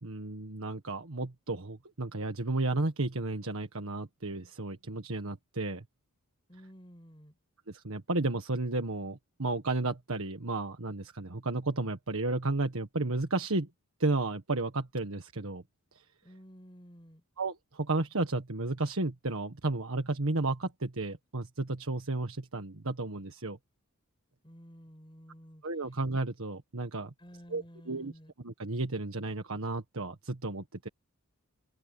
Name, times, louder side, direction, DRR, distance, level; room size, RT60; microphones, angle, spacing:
voice 1, 0.0-5.8 7.7-13.7 14.0-15.6 17.4-23.6 25.6-27.1 27.5-28.1 28.4-30.9, right 2 dB, 70° right, 1.6 m, -33 dB
voice 2, 6.5-7.4 16.2-17.2 24.4-25.7 27.2-28.3, equal, 25° left, 7.5 m, -52 dB
open air
head